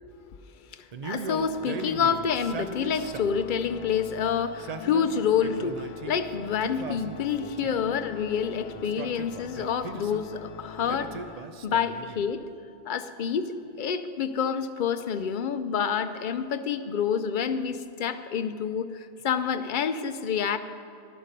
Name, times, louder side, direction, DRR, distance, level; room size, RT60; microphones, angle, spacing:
voice 1, 0.7-12.4 12.8-20.6, left 7 dB, 55° left, 10 dB, 0.7 m, -28 dB
Male speech man speaking, 0.9-3.5 4.4-6.2 6.6-7.9 8.8-10.3 10.9-12.4, right 5 dB, 50° right, 0.5 m, -39 dB
Organ, 1.1-12.0, left 8 dB, 85° left, 0.9 m, -43 dB
12.0 x 11.5 x 5.2 m, 2.7 s
omnidirectional pair, 1.1 m